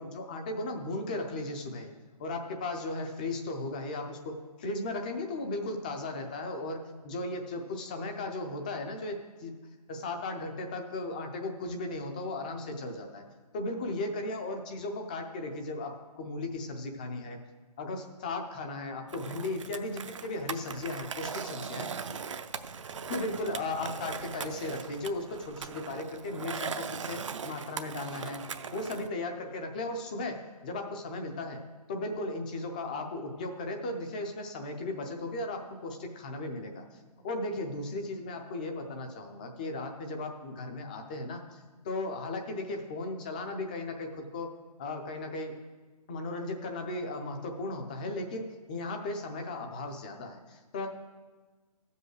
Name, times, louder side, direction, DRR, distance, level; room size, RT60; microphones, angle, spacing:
voice 1, 0.0-1.9 2.2-9.5 9.9-13.2 13.5-17.4 17.8-21.9 23.1-28.4 28.7-31.6 31.9-37.0 37.2-41.6 41.8-44.5 44.8-45.5 46.1-50.9, left 2 dB, 15° left, 5 dB, 0.5 m, -36 dB
Skateboard, 19.1-29.1, right 6 dB, 50° right, 0.6 m, -40 dB
13.5 x 5.4 x 6.3 m, 1.3 s
hypercardioid pair, 165°, 20 cm